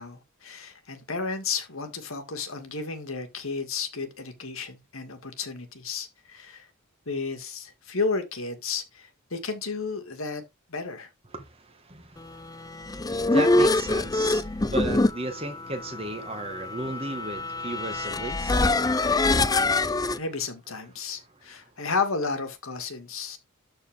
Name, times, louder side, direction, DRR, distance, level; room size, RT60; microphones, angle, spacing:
voice 1, 0.0-6.7 7.1-10.4 10.7-11.1 20.2-23.4, left 4 dB, 70° left, 2.2 m, -32 dB
voice 2, 11.3-20.2, right 2 dB, 25° right, 1.8 m, -36 dB
sound 1, 12.7-20.2, left 2 dB, 15° left, 0.5 m, -24 dB
12.5 x 4.4 x 3.6 m
head